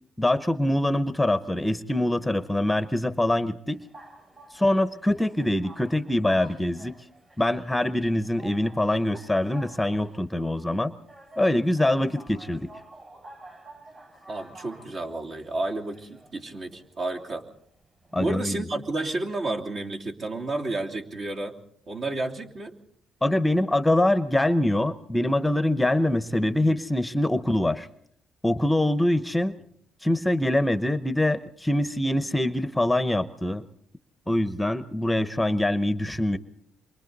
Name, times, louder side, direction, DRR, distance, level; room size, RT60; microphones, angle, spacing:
voice 1, 0.2-3.8 4.5-7.0 7.4-11.0 11.4-12.7 18.1-18.7 23.2-27.9 28.4-29.6 30.0-33.6 34.3-36.4, left 1 dB, 5° left, 12 dB, 0.8 m, -24 dB
sound 1, 3.7-18.5, right 1 dB, 35° right, 6.2 m, -50 dB
voice 2, 14.3-17.4 18.1-21.6 21.9-22.7, right 2 dB, 55° right, 0 dB, 3.0 m, -31 dB
28.0 x 24.0 x 4.0 m, 0.66 s
cardioid pair, 90°, 0 cm